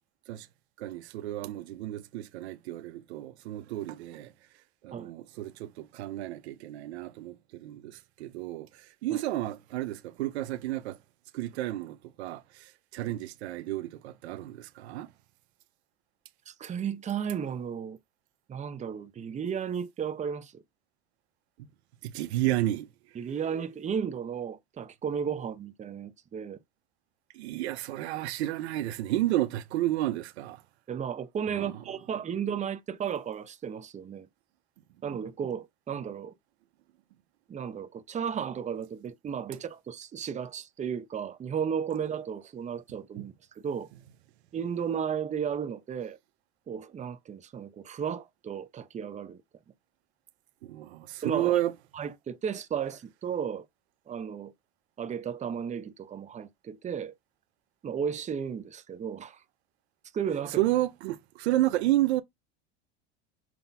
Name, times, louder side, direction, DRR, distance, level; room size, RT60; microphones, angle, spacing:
voice 1, 0.8-4.3 4.8-11.0 11.3-15.1 22.0-22.9 27.3-30.6 31.6-31.7 43.2-43.3 50.6-51.7 60.6-62.2, right 15 dB, 80° right, 0.5 m, -31 dB
voice 2, 16.5-18.0 18.5-20.6 23.1-26.6 30.9-34.3 35.0-36.3 37.5-43.3 43.6-43.9 44.5-46.2 46.7-49.4 51.2-51.6 51.9-53.6 54.1-54.5 55.0-57.1 57.8-59.4 60.1-60.6, right 7 dB, 20° right, 0.7 m, -34 dB
5.7 x 3.8 x 2.3 m
hypercardioid pair, 100°, 32 cm